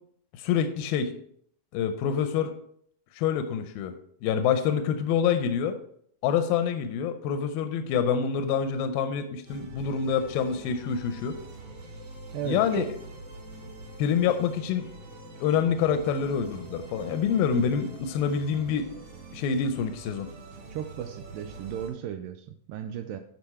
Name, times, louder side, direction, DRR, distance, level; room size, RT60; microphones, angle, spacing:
voice 1, 0.3-1.1 1.7-2.5 3.1-3.9 4.2-5.8 6.2-11.4 12.4-12.9 14.0-14.9 15.4-18.9 19.3-20.3, left 7 dB, 85° left, 8 dB, 2.4 m, -26 dB
sound 1, 9.5-21.9, right 3 dB, 65° right, 4.5 m, -44 dB
voice 2, 12.3-12.9 20.7-23.2, right 9 dB, 80° right, 7 dB, 2.2 m, -35 dB
11.5 x 4.3 x 4.3 m, 0.65 s
omnidirectional pair, 4.2 m